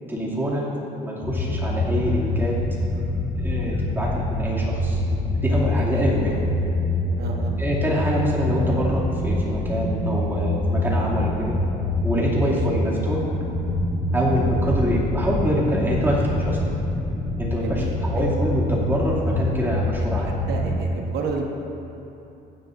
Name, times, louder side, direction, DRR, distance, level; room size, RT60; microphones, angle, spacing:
voice 1, 0.1-0.7 1.0-2.6 3.4-5.0 5.4-6.3 7.6-11.6 12.0-13.2 14.1-16.6 17.4-20.4, equal, 10° right, -6 dB, 2.4 m, -25 dB
sound 1, 1.2-20.8, left 1 dB, 45° left, 2.4 m, -25 dB
voice 2, 5.8-6.4 7.2-7.6 12.4-12.6 17.6-18.3 20.2-21.4, right 4 dB, 75° right, 2 dB, 1.1 m, -33 dB
15.5 x 10.0 x 2.6 m, 2.9 s
cardioid pair, 110°, 17 cm